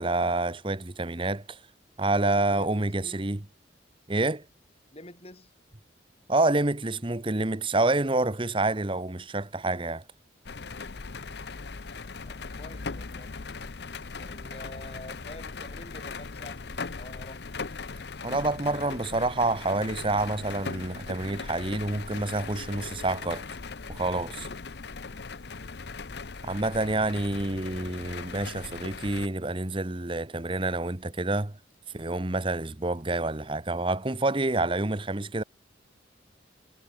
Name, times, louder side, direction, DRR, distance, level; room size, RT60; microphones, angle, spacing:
voice 1, 0.0-1.6 2.0-3.4 4.1-4.4 6.3-10.0 18.2-23.4 23.9-24.5 26.4-31.5 31.9-35.4, right 2 dB, 25° right, 1.1 m, -28 dB
voice 2, 2.2-3.3 4.9-5.5 12.2-13.4 14.2-17.8, left 1 dB, 30° left, 5.2 m, -47 dB
sound 1, 10.4-29.3, left 4 dB, 60° left, 0.8 m, -39 dB
head